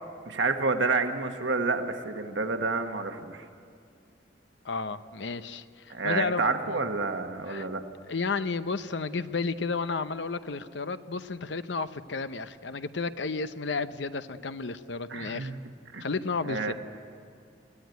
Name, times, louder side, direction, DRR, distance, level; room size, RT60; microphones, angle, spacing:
voice 1, 0.3-3.4 5.9-7.8 15.1-15.5 15.9-16.0 16.5-16.7, right 3 dB, 75° right, 5 dB, 1.5 m, -29 dB
voice 2, 4.6-6.8 7.5-7.7 8.1-15.5 16.0-16.7, left 4 dB, 70° left, 12 dB, 0.8 m, -32 dB
23.0 x 16.5 x 9.3 m, 2.3 s
head